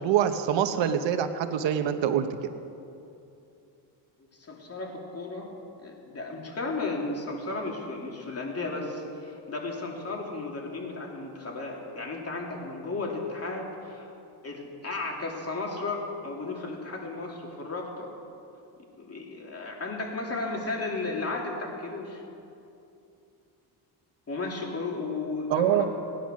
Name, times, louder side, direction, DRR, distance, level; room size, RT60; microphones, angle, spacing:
voice 1, 0.0-2.3 25.5-25.9, right 9 dB, 70° right, 9 dB, 1.0 m, -25 dB
voice 2, 4.3-5.5 5.8-14.1 14.4-18.1 19.0-22.2 24.3-25.9, left 3 dB, 30° left, 0 dB, 2.8 m, -34 dB
17.0 x 10.0 x 6.3 m, 2.7 s
cardioid pair, 90°, 45 cm